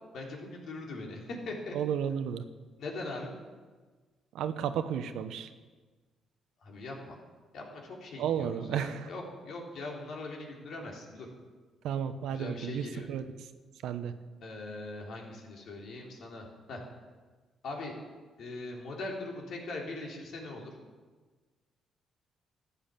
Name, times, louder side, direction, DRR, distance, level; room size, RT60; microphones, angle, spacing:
voice 1, 0.1-1.8 2.8-3.4 6.6-7.2 7.5-11.3 12.3-13.1 14.4-16.8 17.6-18.0 18.4-20.7, left 2 dB, 70° left, -1 dB, 3.4 m, -41 dB
voice 2, 1.7-2.4 4.3-5.5 8.2-9.1 11.8-13.3 13.8-14.1, right 8 dB, 85° right, 10 dB, 0.9 m, -33 dB
14.0 x 8.7 x 7.4 m, 1.4 s
cardioid pair, 90°, 0 cm